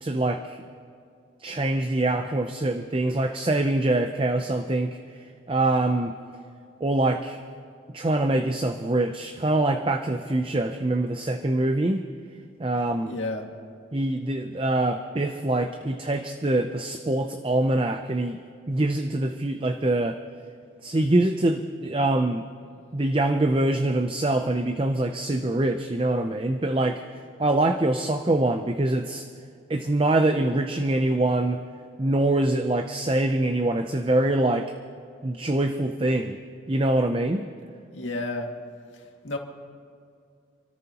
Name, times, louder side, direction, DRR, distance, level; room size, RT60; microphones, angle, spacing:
voice 1, 0.0-0.6 1.4-5.0 5.5-6.1 6.8-7.4 7.9-12.0 12.6-13.2 13.9-18.4 18.7-20.2 20.8-22.5 22.9-27.0 27.4-29.2 29.7-31.6 32.0-34.7 35.2-36.4 36.7-37.5, right 2 dB, 25° right, 6 dB, 0.5 m, -24 dB
voice 2, 13.0-13.5 37.9-38.5 39.2-39.4, left 2 dB, 85° left, 1 dB, 2.1 m, -30 dB
28.5 x 13.5 x 2.9 m, 2.4 s
head